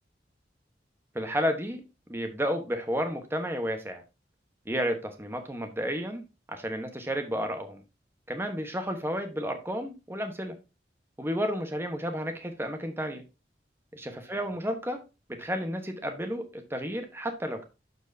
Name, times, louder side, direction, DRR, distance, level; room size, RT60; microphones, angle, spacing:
voice 1, 1.1-1.8 2.1-4.0 4.7-7.8 8.3-10.6 11.2-13.2 13.9-15.0 15.3-17.6, equal, 15° right, 6 dB, 1.1 m, -32 dB
12.0 x 4.6 x 2.7 m, 0.27 s
head